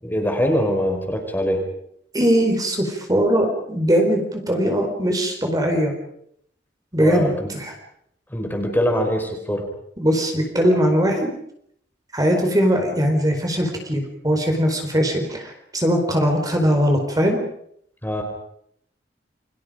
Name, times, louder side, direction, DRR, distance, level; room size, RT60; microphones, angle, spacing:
voice 1, 0.0-1.6 7.0-7.5 8.3-9.6 18.0-18.2, equal, 10° left, 3 dB, 5.1 m, -23 dB
voice 2, 2.1-5.9 6.9-7.7 10.0-11.3 12.1-17.4, equal, 20° right, 3 dB, 4.7 m, -20 dB
30.0 x 25.0 x 5.2 m, 0.71 s
head